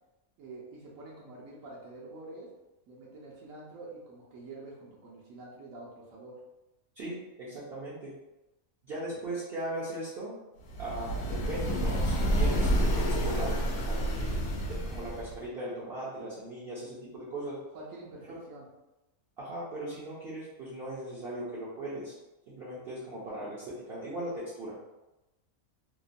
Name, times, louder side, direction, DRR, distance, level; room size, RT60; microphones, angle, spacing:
voice 1, 0.4-2.5 2.9-6.4 9.1-9.2 17.7-18.7, right 2 dB, 75° right, -5 dB, 1.0 m, -47 dB
voice 2, 7.0-8.1 8.8-10.4 10.8-13.6 13.9-17.6 18.3-18.4 19.4-22.1 22.5-24.8, right 1 dB, 55° right, -8 dB, 0.7 m, -38 dB
sound 1, 10.7-15.4, equal, 90° left, 1.0 m, -29 dB
2.9 x 2.1 x 2.5 m, 0.99 s
omnidirectional pair, 1.4 m